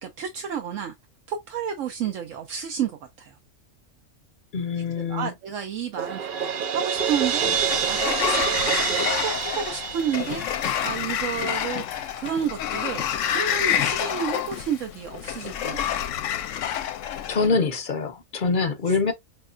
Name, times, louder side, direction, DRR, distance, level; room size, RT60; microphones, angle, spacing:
voice 1, 0.0-0.9 1.3-3.3 5.1-16.1 18.6-18.7, right 8 dB, 75° right, 1.0 m, -31 dB
voice 2, 4.5-5.3 17.3-19.1, left 4 dB, 45° left, 0.8 m, -24 dB
Crash cymbal, 6.0-10.9, right 7 dB, 60° right, 0.5 m, -27 dB
Sliding door, 7.0-17.5, left 10 dB, 75° left, 0.9 m, -28 dB
5.6 x 2.3 x 2.5 m
omnidirectional pair, 1.3 m